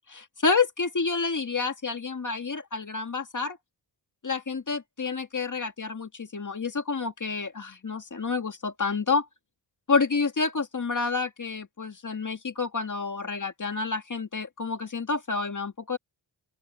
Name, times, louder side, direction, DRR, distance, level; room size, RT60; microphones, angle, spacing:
voice 1, 0.1-3.6 4.2-9.3 9.9-16.0, left 4 dB, 40° left, 2.0 m, -29 dB
open air
cardioid pair, 70°, 46 cm